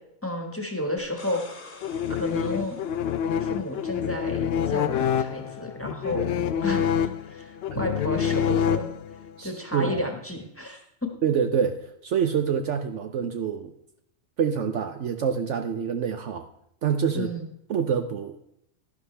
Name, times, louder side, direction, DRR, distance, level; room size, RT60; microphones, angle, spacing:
voice 1, 0.2-1.4 2.1-2.8 3.4-6.3 6.6-8.9 9.4-11.1 17.1-17.5, left 1 dB, 10° left, 3 dB, 1.5 m, -32 dB
sound 1, 1.0-3.8 6.6-6.7, left 3 dB, 40° left, 1.5 m, -47 dB
sound 2, 1.8-9.3, left 8 dB, 65° left, 0.6 m, -27 dB
voice 2, 9.4-10.0 11.2-13.7 14.4-16.5 16.8-17.3 17.7-18.4, right 7 dB, 65° right, 7 dB, 0.9 m, -26 dB
11.0 x 11.0 x 3.3 m, 0.77 s
omnidirectional pair, 1.4 m